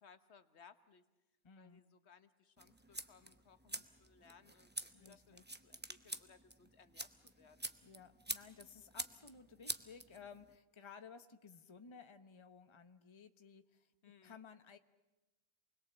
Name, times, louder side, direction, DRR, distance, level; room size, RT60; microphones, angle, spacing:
voice 1, 0.0-1.0 1.6-4.7 5.0-7.7 14.0-14.4, left 6 dB, 75° left, 11 dB, 1.3 m, -64 dB
voice 2, 1.4-1.8 4.9-5.4 7.8-13.9 14.2-14.8, left 6 dB, 25° left, 9 dB, 0.9 m, -57 dB
sound 1, 2.6-10.5, right 1 dB, 10° right, 0.7 m, -47 dB
28.0 x 21.0 x 8.0 m, 1.1 s
omnidirectional pair, 1.2 m